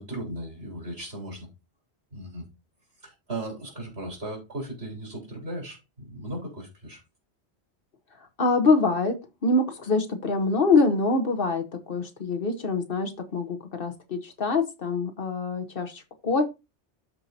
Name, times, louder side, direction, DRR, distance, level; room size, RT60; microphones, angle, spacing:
voice 1, 0.0-1.5 2.1-2.4 3.0-7.0, right 1 dB, 65° right, -1 dB, 4.1 m, -37 dB
voice 2, 8.4-16.5, left 3 dB, 55° left, 6 dB, 1.1 m, -25 dB
13.0 x 4.6 x 2.7 m, 0.26 s
omnidirectional pair, 1.2 m